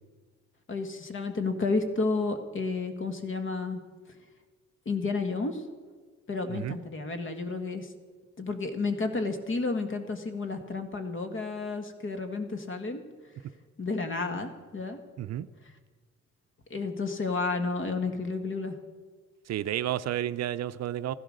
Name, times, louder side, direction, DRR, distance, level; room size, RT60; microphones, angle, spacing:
voice 1, 0.7-3.8 4.9-5.6 6.3-7.9 8.4-13.0 13.8-15.0 16.7-18.8, left 3 dB, 40° left, 8 dB, 1.7 m, -31 dB
voice 2, 19.5-21.1, right 12 dB, 60° right, 13 dB, 0.5 m, -31 dB
14.5 x 12.0 x 6.5 m, 1.5 s
cardioid pair, 90°, 30 cm